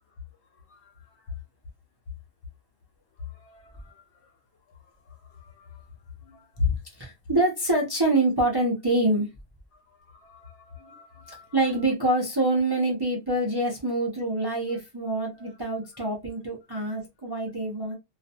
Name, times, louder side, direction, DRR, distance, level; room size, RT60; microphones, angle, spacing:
voice 1, 3.4-3.9 5.4-5.8 10.1-11.5 15.4-15.5, left 5 dB, 70° left, 0.9 m, -50 dB
voice 2, 6.6-9.3 11.3-18.0, right 2 dB, 30° right, 0.5 m, -26 dB
2.4 x 2.1 x 2.7 m
omnidirectional pair, 1.3 m